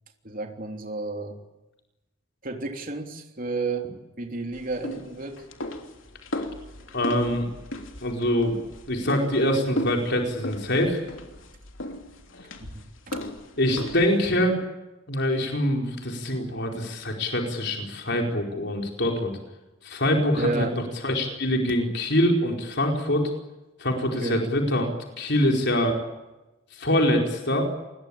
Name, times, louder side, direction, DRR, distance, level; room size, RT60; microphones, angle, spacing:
voice 1, 0.2-1.4 2.4-5.4 12.6-13.2 20.4-20.8 24.2-24.4, right 3 dB, 45° right, 4 dB, 3.3 m, -32 dB
sound 1, 4.5-14.3, left 1 dB, 75° left, 3.3 m, -36 dB
voice 2, 6.9-7.5 8.0-11.0 13.6-14.6 15.1-19.3 19.8-20.7 21.0-23.3 23.8-24.9 25.2-26.0 26.7-27.7, left 1 dB, 60° left, 2 dB, 4.8 m, -24 dB
28.5 x 21.5 x 8.7 m, 1.0 s
head